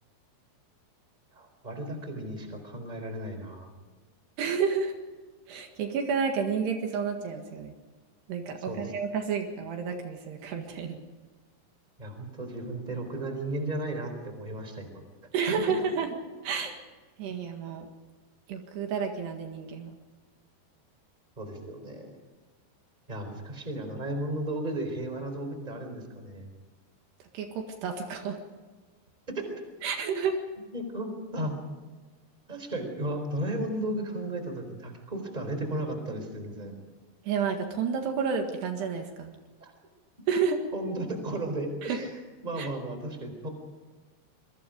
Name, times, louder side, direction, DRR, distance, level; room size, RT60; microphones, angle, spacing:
voice 1, 1.3-3.7 8.7-8.9 12.0-15.0 21.4-22.1 23.1-26.5 29.3-29.5 30.0-30.2 30.7-31.5 32.5-36.8 39.6-39.7 40.7-42.1 42.4-43.5, right 1 dB, 10° right, 6 dB, 3.7 m, -34 dB
voice 2, 4.4-4.9 5.5-7.7 8.3-11.0 15.3-16.1 16.4-16.8 17.2-17.9 18.5-19.9 27.3-28.4 29.8-30.4 37.3-39.3 40.3-40.6 41.8-42.0 42.6-42.7, right 6 dB, 70° right, 4 dB, 3.8 m, -30 dB
26.5 x 23.0 x 5.1 m, 1.4 s
omnidirectional pair, 5.0 m